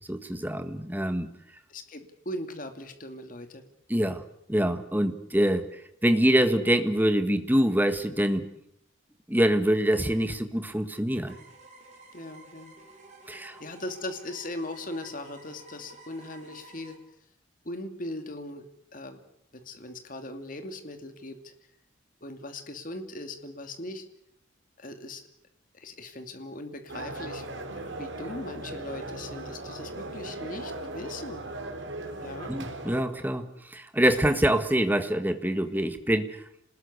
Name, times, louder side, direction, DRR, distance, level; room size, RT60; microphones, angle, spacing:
voice 1, 0.1-1.3 3.9-4.2 4.5-8.4 9.3-11.4 13.3-13.6 32.5-36.4, right 1 dB, 10° right, 9 dB, 1.6 m, -25 dB
voice 2, 1.7-3.6 4.0-4.2 12.1-12.8 13.4-17.0 17.6-18.6 18.9-19.2 19.5-21.5 22.2-24.0 24.8-25.2 25.7-27.5 27.7-31.5 32.2-32.5, left 1 dB, 40° left, 7 dB, 2.6 m, -39 dB
sound 1, 11.3-16.9, right 2 dB, 35° right, 5.5 m, -51 dB
sound 2, 26.9-33.0, right 2 dB, 65° right, 4.3 m, -38 dB
27.0 x 20.0 x 8.3 m, 0.73 s
head